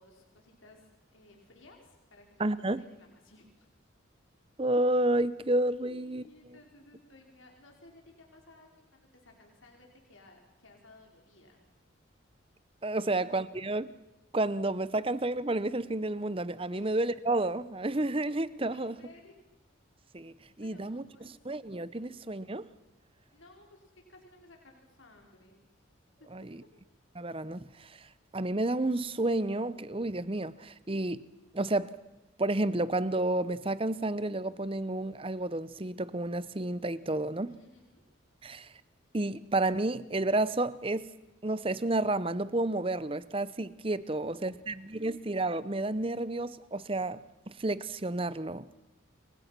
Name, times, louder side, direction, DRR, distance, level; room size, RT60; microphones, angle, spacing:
voice 1, 0.0-3.7 5.8-11.6 13.0-13.2 16.7-17.0 18.7-19.3 20.6-21.3 22.0-22.1 23.3-25.6 26.2-26.3 37.5-38.0 44.0-45.2, left 2 dB, 75° left, 5.2 m, -58 dB
voice 2, 2.4-2.8 4.6-6.2 12.8-13.9 14.3-19.0 20.1-21.0 21.5-22.7 26.3-26.6 27.1-28.1 28.3-31.2 31.5-32.0 32.4-37.6 38.4-38.7 39.1-41.1 41.4-48.7, right 2 dB, 25° right, 0.8 m, -31 dB
29.0 x 24.0 x 6.1 m
head